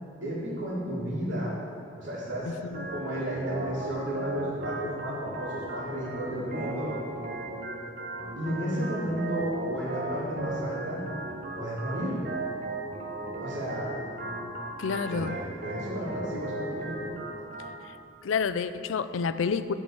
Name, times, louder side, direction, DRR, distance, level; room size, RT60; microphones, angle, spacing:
voice 1, 0.2-1.5 2.0-2.5 2.9-6.9 8.4-11.0 11.5-12.2 13.4-13.9 15.1-16.9, equal, 65° right, -11 dB, 2.4 m, -32 dB
Organ, 2.7-17.7, right 2 dB, 45° right, 1.2 m, -36 dB
voice 2, 14.8-15.4 18.2-19.7, left 5 dB, 80° left, 12 dB, 0.4 m, -29 dB
10.5 x 4.5 x 7.1 m, 2.7 s
head